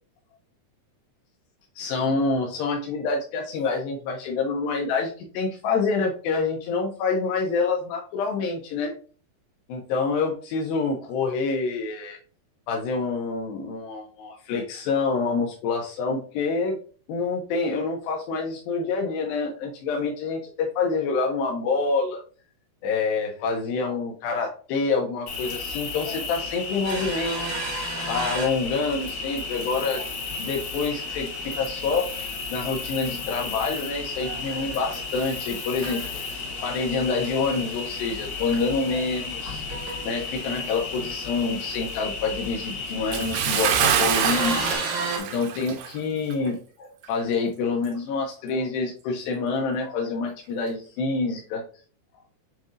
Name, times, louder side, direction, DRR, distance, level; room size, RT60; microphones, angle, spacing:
voice 1, 1.8-8.9 9.7-12.2 12.7-16.8 17.1-22.2 22.8-27.4 28.0-30.1 30.4-32.1 32.5-39.6 40.0-44.6 45.2-51.6, left 4 dB, 85° left, 1 dB, 2.0 m, -27 dB
Cricket, 25.3-44.8, left 4 dB, 70° left, 2.8 m, -34 dB
sound 1, 26.8-29.4 29.6-30.2 30.6-30.7 32.8-33.9 34.2-35.3 35.7-36.8 37.7-37.8 38.2-38.3 38.5-38.7 39.0-39.4 39.7-40.2 43.0-43.7 44.2-45.2, right 3 dB, 65° right, 1.8 m, -33 dB
Bathtub (filling or washing) / Splash splatter, 43.1-46.0 46.3-46.5 47.0-47.1, right 8 dB, 80° right, 2.7 m, -25 dB
7.4 x 2.7 x 2.4 m, 0.40 s
omnidirectional pair, 4.9 m